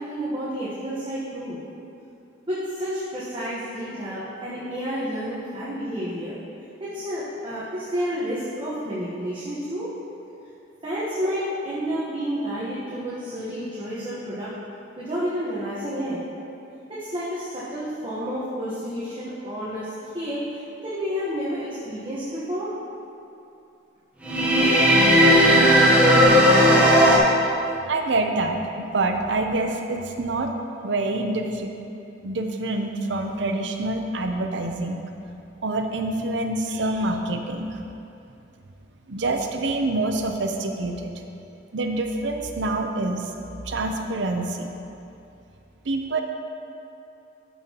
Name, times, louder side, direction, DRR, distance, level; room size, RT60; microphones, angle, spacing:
voice 1, 0.0-1.6 2.5-6.4 6.8-9.9 10.8-14.5 15.0-16.2 16.9-22.7, equal, 25° right, -9 dB, 1.2 m, -30 dB
sound 1, 24.2-27.2, equal, 10° right, 1.0 m, -15 dB
voice 2, 27.9-30.5 30.8-31.7 32.2-35.0 35.6-37.8 39.1-41.1 41.7-43.3 43.6-44.7 45.8-46.2, right 2 dB, 75° right, 4 dB, 0.7 m, -26 dB
13.0 x 5.6 x 2.9 m, 2.7 s
head